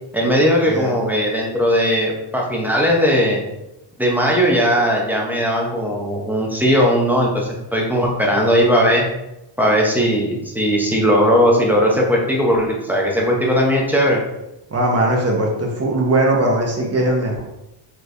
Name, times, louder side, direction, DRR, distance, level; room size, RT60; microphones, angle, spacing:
voice 1, 0.1-3.4 4.0-9.0 9.6-14.2, equal, 5° right, -2 dB, 0.8 m, -18 dB
voice 2, 14.7-17.4, right 1 dB, 30° right, -1 dB, 1.0 m, -19 dB
4.1 x 3.2 x 3.3 m, 0.91 s
cardioid pair, 125°, 50 cm